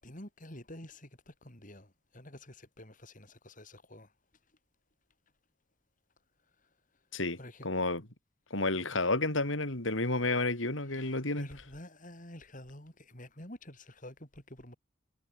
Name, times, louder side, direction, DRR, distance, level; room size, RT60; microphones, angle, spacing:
voice 1, 0.0-4.1 7.4-7.7 10.9-14.8, left 1 dB, 40° left, 7.6 m, -49 dB
voice 2, 7.1-8.1 8.5-11.5, left 2 dB, 70° left, 4.2 m, -31 dB
head